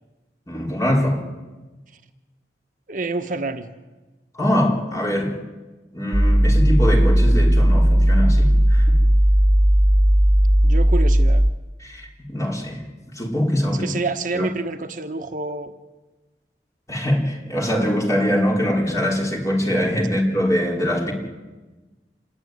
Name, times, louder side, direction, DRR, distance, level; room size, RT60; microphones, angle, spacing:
voice 1, 0.5-1.2 4.3-5.4 5.9-9.0 11.8-12.8 13.1-14.0 14.3-14.5 16.9-21.1, equal, 20° left, -1 dB, 4.5 m, -23 dB
voice 2, 2.9-3.7 10.6-11.4 13.7-15.7, right 3 dB, 50° right, 6 dB, 1.2 m, -28 dB
sound 1, 6.1-11.5, equal, 30° right, 1.1 m, -15 dB
26.5 x 21.5 x 9.6 m, 1.2 s
head